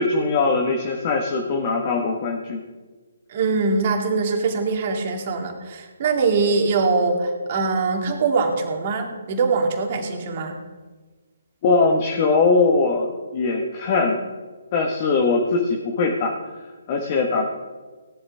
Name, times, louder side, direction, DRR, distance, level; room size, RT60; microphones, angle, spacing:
voice 1, 0.0-2.6 11.6-14.2 14.7-16.4 16.9-17.5, left 3 dB, 35° left, 1 dB, 1.5 m, -21 dB
voice 2, 3.3-10.6, right 4 dB, 40° right, 2 dB, 2.4 m, -22 dB
17.5 x 11.0 x 3.6 m, 1.4 s
figure-of-eight pair, 140°, 0 cm